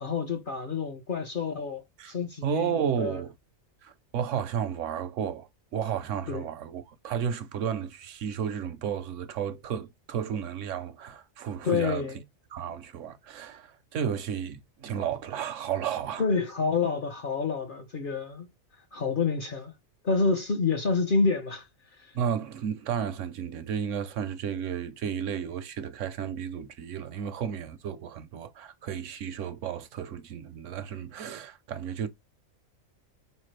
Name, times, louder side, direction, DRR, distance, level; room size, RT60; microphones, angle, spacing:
voice 1, 0.0-2.7 3.0-3.2 6.3-6.5 11.6-12.2 16.2-18.5 18.9-19.7 20.0-21.7 22.0-22.1, left 4 dB, 50° left, 0.7 m, -28 dB
voice 2, 2.4-3.3 3.8-12.1 12.5-16.2 22.1-32.1, right 8 dB, 70° right, 0.9 m, -33 dB
4.4 x 3.3 x 3.2 m
omnidirectional pair, 1.4 m